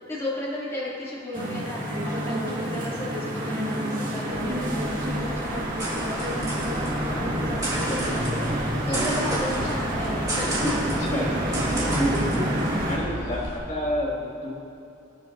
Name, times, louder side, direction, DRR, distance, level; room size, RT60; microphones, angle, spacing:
voice 1, 0.1-10.9 12.3-12.6, left 1 dB, 15° left, -8 dB, 2.6 m, -34 dB
sound 1, 1.3-13.0, right 1 dB, 45° right, 1.9 m, -28 dB
sound 2, 4.3-13.6, right 1 dB, 20° right, 2.4 m, -32 dB
voice 2, 8.9-9.4 11.1-11.3 11.7-12.5 12.8-14.5, equal, 35° left, -5 dB, 2.1 m, -30 dB
21.5 x 9.3 x 2.7 m, 2.7 s
head